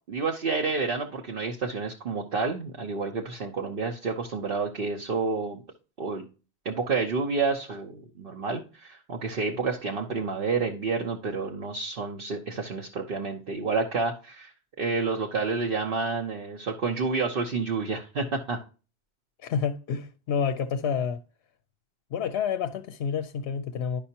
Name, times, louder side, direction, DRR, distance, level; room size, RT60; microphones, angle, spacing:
voice 1, 0.1-5.6 6.0-6.2 6.6-18.6, right 4 dB, 60° right, 1.0 m, -29 dB
voice 2, 19.4-21.2 22.1-24.0, left 7 dB, 70° left, 0.8 m, -29 dB
11.0 x 5.5 x 2.8 m
omnidirectional pair, 1.1 m